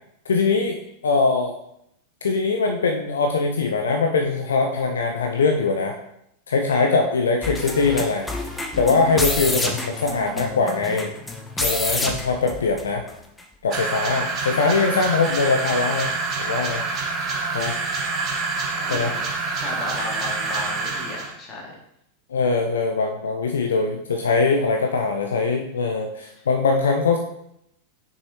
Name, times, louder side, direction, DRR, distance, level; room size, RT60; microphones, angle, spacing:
voice 1, 0.3-1.5 2.2-6.0 6.5-8.3 8.8-11.1 11.6-13.0 13.6-16.1 16.4-16.8 17.5-17.8 18.9-19.1 22.3-27.2, left 4 dB, 65° left, 4 dB, 0.5 m, -22 dB
sound 1, 7.4-13.1 13.4-13.5, left 2 dB, 10° left, 0.8 m, -28 dB
sound 2, 13.7-21.3, right 3 dB, 30° right, 1.2 m, -27 dB
voice 2, 18.7-19.3 19.6-21.7 26.3-26.4, left 2 dB, 25° left, -3 dB, 2.0 m, -35 dB
6.3 x 5.4 x 2.9 m, 0.78 s
figure-of-eight pair, 90°, 0 cm